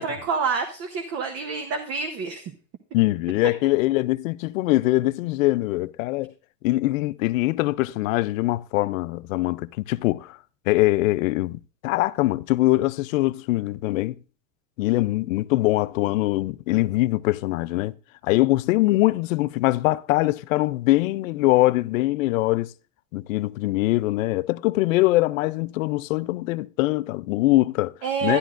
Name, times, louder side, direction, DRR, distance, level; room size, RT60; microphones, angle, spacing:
voice 1, 0.0-2.5 28.0-28.4, right 5 dB, 40° right, 0.9 m, -27 dB
voice 2, 2.9-6.3 6.6-10.4 10.7-14.2 14.8-18.0 18.2-22.7 23.1-27.9 28.2-28.4, left 18 dB, 85° left, 0.5 m, -22 dB
11.5 x 11.5 x 2.5 m
supercardioid pair, 140°, 38 cm